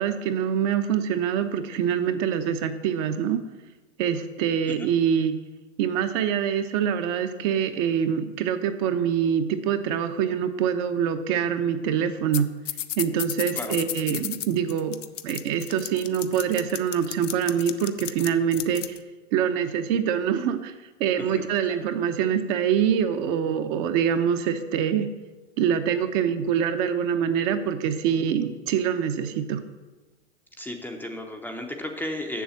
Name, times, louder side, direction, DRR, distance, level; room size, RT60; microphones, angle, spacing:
voice 1, 0.0-3.4 4.0-5.4 5.8-12.5 13.0-15.0 15.2-18.8 19.3-20.7 21.0-25.1 25.6-29.6, right 8 dB, 40° right, 7 dB, 0.9 m, -25 dB
sound 1, 12.3-12.4 12.7-19.0, left 11 dB, 80° left, 0.7 m, -33 dB
voice 2, 30.6-32.4, left 1 dB, 5° left, 2 dB, 0.7 m, -34 dB
7.1 x 7.0 x 7.2 m, 1.2 s
hypercardioid pair, 115°, 37 cm